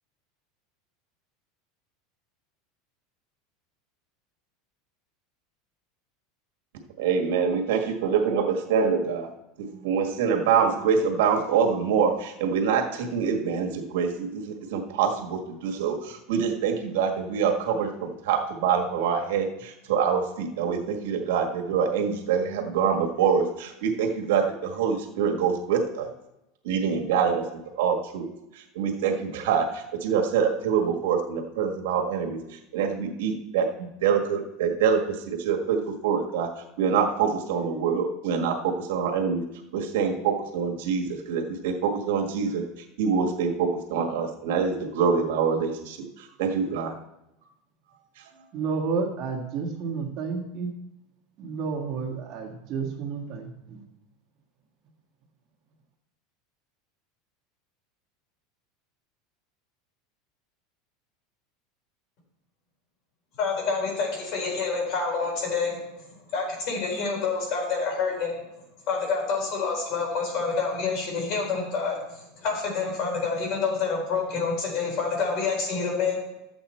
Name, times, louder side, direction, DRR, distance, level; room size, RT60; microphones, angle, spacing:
voice 1, 7.0-9.3 9.6-26.1 26.6-27.4 27.8-28.3 28.5-36.5 36.8-39.4 39.7-42.6 43.0-46.9, right 6 dB, 75° right, 3 dB, 1.6 m, -25 dB
voice 2, 48.5-50.7 51.4-53.8, right 5 dB, 40° right, 0 dB, 1.7 m, -31 dB
voice 3, 63.4-65.8 66.3-68.4 68.9-76.3, left 4 dB, 50° left, 0 dB, 4.1 m, -27 dB
12.5 x 7.9 x 4.3 m, 0.91 s
supercardioid pair, 160°, 0 cm